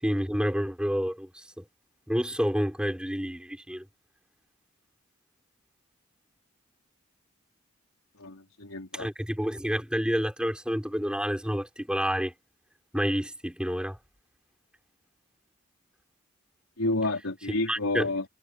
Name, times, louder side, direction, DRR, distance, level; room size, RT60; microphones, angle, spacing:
voice 1, 0.0-1.6 2.1-3.8 8.9-12.3 12.9-14.0 17.7-18.1, equal, 5° right, 5.2 m, -29 dB
voice 2, 8.2-9.1 16.8-18.3, left 2 dB, 75° left, 4.0 m, -30 dB
head